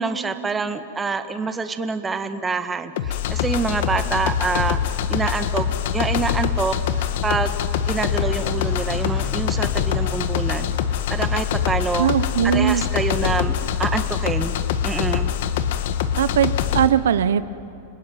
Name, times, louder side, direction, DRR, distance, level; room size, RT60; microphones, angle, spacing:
voice 1, 0.0-7.6 7.8-10.7 11.1-12.1 12.4-13.5 13.8-14.6 14.8-15.3, right 4 dB, 15° right, 9 dB, 1.5 m, -26 dB
sound 1, 3.0-16.9, left 9 dB, 65° left, 1.6 m, -24 dB
sound 2, 7.9-11.5, left 5 dB, 15° left, 1.3 m, -38 dB
voice 2, 12.0-12.8 16.2-17.4, right 10 dB, 85° right, 14 dB, 0.8 m, -20 dB
30.0 x 20.0 x 9.3 m, 2.8 s
hypercardioid pair, 135°, 0 cm